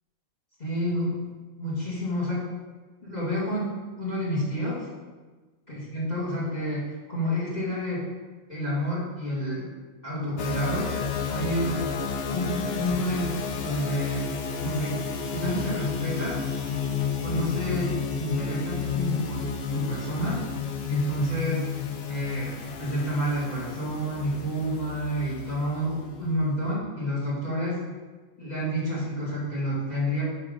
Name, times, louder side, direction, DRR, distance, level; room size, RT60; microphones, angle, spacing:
voice 1, 0.6-1.2 1.6-2.4 3.0-4.9 5.7-8.1 8.5-9.7 10.0-10.9 11.3-11.9 12.3-13.4 13.6-14.2 14.6-15.0 15.3-16.7 17.2-20.4 20.9-21.7 22.1-27.9 28.4-30.2, equal, 30° left, -7 dB, 2.3 m, -29 dB
sound 1, 10.4-26.7, left 6 dB, 55° left, 0.8 m, -32 dB
6.5 x 5.4 x 5.1 m, 1.3 s
omnidirectional pair, 1.4 m